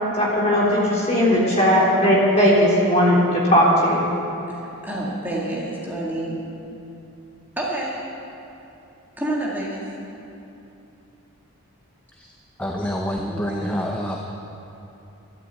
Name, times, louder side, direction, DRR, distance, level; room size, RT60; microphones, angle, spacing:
voice 1, 0.1-4.1, equal, 30° left, -5 dB, 3.6 m, -18 dB
voice 2, 4.5-6.4 7.6-8.0 9.2-9.9 13.2-13.8, right 1 dB, 10° right, -5 dB, 2.0 m, -29 dB
voice 3, 12.6-14.2, equal, 5° left, 0 dB, 0.8 m, -27 dB
13.0 x 12.0 x 8.3 m, 2.9 s
head